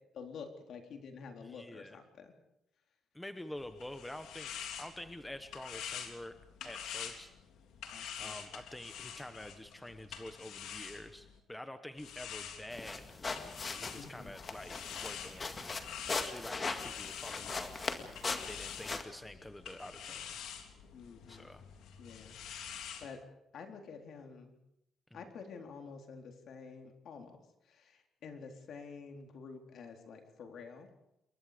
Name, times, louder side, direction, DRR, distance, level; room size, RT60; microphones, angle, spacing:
voice 1, 0.1-2.3 7.9-8.4 13.9-14.3 20.9-21.5 22.0-22.4 23.0-23.2 23.5-24.5 25.1-27.4 27.7-30.9, left 5 dB, 55° left, 4 dB, 3.9 m, -49 dB
voice 2, 1.4-2.0 3.1-6.3 6.6-7.3 8.2-15.6 16.0-17.9 18.5-20.4 21.3-21.6 25.1-25.3, left 1 dB, 5° left, 8 dB, 1.1 m, -47 dB
sound 1, 3.6-11.4 12.0-23.1, left 8 dB, 85° left, 3.4 m, -47 dB
sound 2, 12.7-19.0, left 4 dB, 25° left, 2.0 m, -40 dB
28.0 x 23.0 x 5.2 m, 0.84 s
cardioid pair, 175°, 0 cm